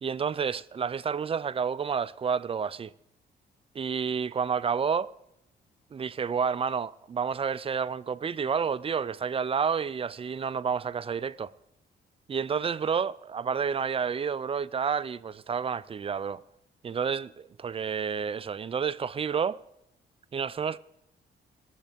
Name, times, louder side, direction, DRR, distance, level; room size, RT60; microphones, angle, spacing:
voice 1, 0.0-2.9 3.8-5.1 5.9-11.5 12.3-16.4 16.8-19.6 20.3-20.8, right 6 dB, 30° right, 0.4 m, -30 dB
18.5 x 7.3 x 5.1 m
cardioid pair, 100°, 18 cm